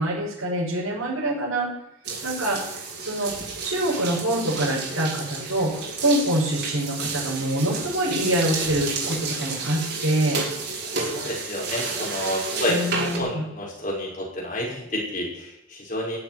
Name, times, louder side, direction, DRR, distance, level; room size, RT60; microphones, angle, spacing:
voice 1, 0.0-1.7 2.2-2.6 3.0-3.3 3.6-5.7 6.0-10.4 12.7-13.5, right 1 dB, 80° right, -6 dB, 6.2 m, -25 dB
sound 1, 2.0-13.2, right 4 dB, 55° right, 4.2 m, -31 dB
voice 2, 10.9-16.2, left 1 dB, 40° left, -3 dB, 5.7 m, -29 dB
15.5 x 7.7 x 9.2 m, 0.84 s
head